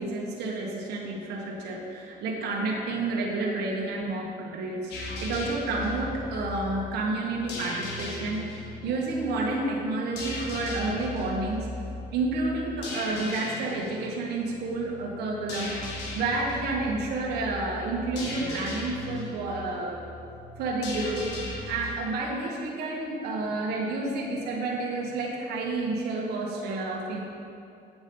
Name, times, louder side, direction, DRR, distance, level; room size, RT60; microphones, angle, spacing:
voice 1, 0.0-4.9 5.2-8.4 8.8-11.7 12.1-15.7 16.1-20.0 20.6-21.3 21.7-27.2, right 2 dB, 75° right, -2 dB, 1.3 m, -30 dB
sound 1, 4.9-21.9, left 2 dB, 80° left, 1.8 m, -38 dB
8.1 x 6.1 x 5.3 m, 2.6 s
cardioid pair, 110°, 17 cm